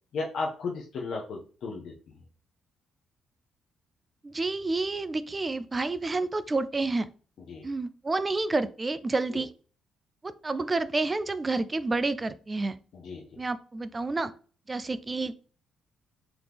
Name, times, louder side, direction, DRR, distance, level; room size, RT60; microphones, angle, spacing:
voice 1, 0.1-2.2 7.5-7.7 9.3-9.4 12.9-13.4, left 4 dB, 65° left, -2 dB, 0.7 m, -35 dB
voice 2, 4.2-7.1 7.6-9.5 10.2-12.8 13.4-14.3 14.7-15.3, right 3 dB, 25° right, 14 dB, 0.3 m, -29 dB
4.0 x 2.9 x 3.4 m, 0.40 s
cardioid pair, 90°, 0 cm